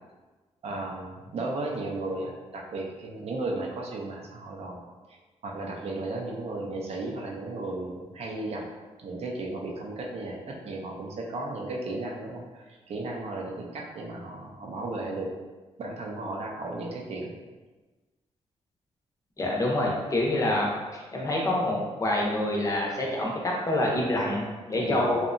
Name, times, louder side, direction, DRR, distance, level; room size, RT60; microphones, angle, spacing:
voice 1, 0.6-4.8 5.4-8.6 9.0-15.3 15.8-17.4 24.7-25.1, right 2 dB, 65° right, -1 dB, 0.5 m, -35 dB
voice 2, 19.4-25.3, left 1 dB, 30° left, -2 dB, 0.5 m, -27 dB
2.7 x 2.1 x 2.5 m, 1.3 s
cardioid pair, 100°, 11 cm